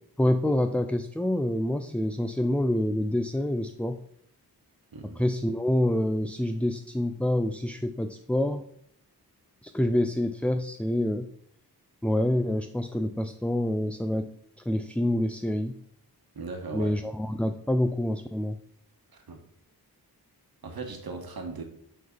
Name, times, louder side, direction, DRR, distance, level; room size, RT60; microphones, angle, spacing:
voice 1, 0.2-4.0 5.2-8.6 9.6-11.3 12.0-14.3 14.7-15.8 16.7-18.6, left 1 dB, 5° left, 8 dB, 0.3 m, -27 dB
voice 2, 4.9-5.2 16.3-17.0 19.1-19.4 20.6-21.6, right 3 dB, 65° right, 4 dB, 1.5 m, -38 dB
9.3 x 3.9 x 5.4 m, 0.70 s
wide cardioid pair, 105°, 39 cm